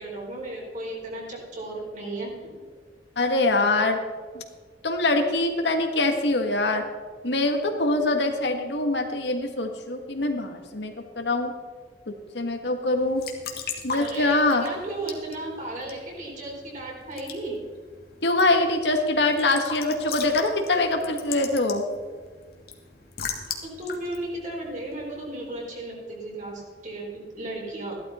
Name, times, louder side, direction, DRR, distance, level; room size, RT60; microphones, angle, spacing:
voice 1, 0.0-2.5 13.9-17.6 23.8-28.0, right 2 dB, 45° right, -3 dB, 4.6 m, -35 dB
voice 2, 3.2-4.0 4.3-4.4 4.8-6.9 7.2-11.5 12.1-13.3 13.8-14.6 18.2-21.8, left 2 dB, 75° left, 4 dB, 1.7 m, -24 dB
Raindrop / Drip / Trickle dribble, 13.0-25.4, left 6 dB, 60° left, 1.8 m, -39 dB
15.0 x 12.0 x 4.3 m, 1.5 s
head